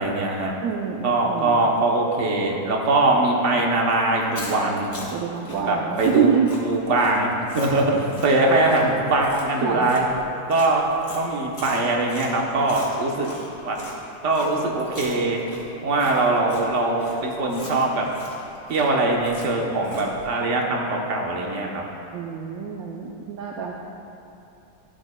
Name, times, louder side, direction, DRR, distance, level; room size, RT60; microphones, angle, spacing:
voice 1, 0.0-0.5 1.0-4.9 5.7-6.3 6.6-10.0 10.5-13.3 13.6-13.8 14.2-15.4 15.8-18.1 18.7-21.8, right 2 dB, 50° right, -1 dB, 1.2 m, -22 dB
voice 2, 0.6-1.6 5.1-6.5 9.6-9.9 22.1-23.7, right 7 dB, 70° right, 0 dB, 0.9 m, -26 dB
Chewing mastication, 4.1-14.0 14.3-20.3, left 1 dB, 45° left, 1.9 m, -40 dB
13.0 x 8.1 x 2.2 m, 2.7 s
omnidirectional pair, 1.9 m